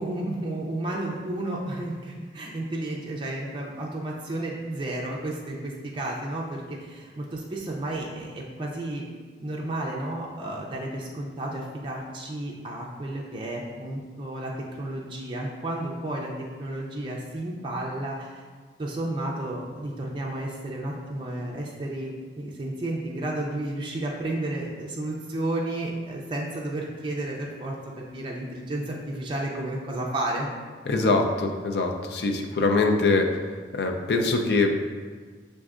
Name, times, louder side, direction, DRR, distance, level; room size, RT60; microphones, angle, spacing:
voice 1, 0.0-9.0 9.4-14.5 14.8-16.3 16.6-18.4 18.8-30.5, right 1 dB, 30° right, -2 dB, 0.4 m, -32 dB
voice 2, 30.9-33.3 33.7-34.7, left 3 dB, 65° left, 3 dB, 0.4 m, -23 dB
5.9 x 2.5 x 2.4 m, 1.5 s
head